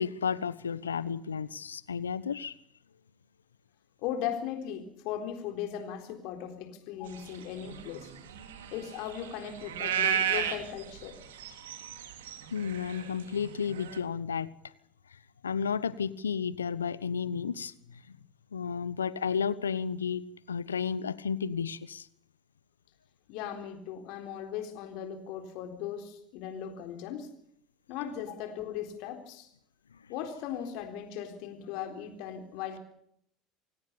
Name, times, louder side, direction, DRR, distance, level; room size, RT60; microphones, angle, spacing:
voice 1, 0.0-2.5 12.5-14.5 15.1-18.2 18.5-22.1 29.9-30.0, left 6 dB, 85° left, 18 dB, 1.0 m, -32 dB
voice 2, 4.0-8.1 8.7-11.2 23.3-27.3 27.9-29.5 30.1-32.8, left 9 dB, 60° left, 5 dB, 4.0 m, -38 dB
sound 1, 7.2-14.0, right 8 dB, 75° right, 2.8 m, -34 dB
27.0 x 18.0 x 6.9 m, 0.70 s
hypercardioid pair, 70°, 0 cm